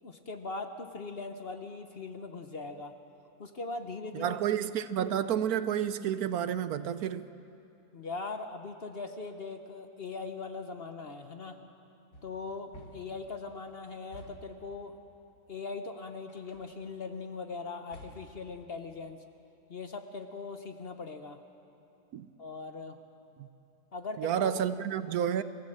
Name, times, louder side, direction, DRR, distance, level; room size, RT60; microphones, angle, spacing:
voice 1, 0.0-2.9 3.4-4.4 7.9-11.6 12.2-15.0 15.5-19.2 19.7-21.4 22.4-23.0 23.9-24.5, left 3 dB, 45° left, 7 dB, 1.0 m, -40 dB
voice 2, 4.1-7.3 22.1-22.3 23.4-23.5 24.2-25.4, right 9 dB, 70° right, 13 dB, 1.1 m, -30 dB
sound 1, 12.1-13.3 14.1-14.7 16.3-16.8 17.9-18.5, left 1 dB, 75° left, 2.6 m, -52 dB
25.5 x 15.5 x 7.8 m, 2.8 s
omnidirectional pair, 1.7 m